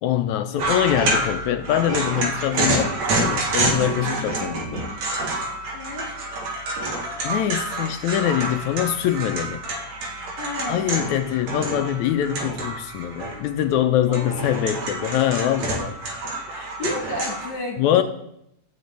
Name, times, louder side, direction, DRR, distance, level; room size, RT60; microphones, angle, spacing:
voice 1, 0.0-4.9 7.2-9.6 10.7-15.9 17.8-18.0, left 11 dB, 75° left, 8 dB, 1.9 m, -23 dB
sound 1, 0.6-13.6 14.0-17.5, right 2 dB, 60° right, 2.9 m, -28 dB
voice 2, 5.7-6.1 10.4-11.1 14.1-14.3 16.5-18.0, left 2 dB, 40° left, 0 dB, 2.8 m, -32 dB
12.5 x 6.5 x 8.2 m, 0.79 s
omnidirectional pair, 3.7 m